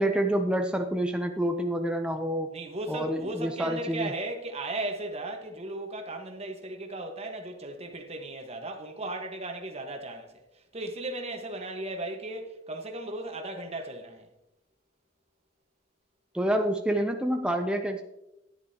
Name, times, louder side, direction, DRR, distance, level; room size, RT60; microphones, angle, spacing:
voice 1, 0.0-2.5 2.9-4.1 16.3-18.0, right 1 dB, 5° right, 0.4 m, -27 dB
voice 2, 2.5-14.3, right 2 dB, 35° right, 1.3 m, -36 dB
10.5 x 10.0 x 2.8 m
head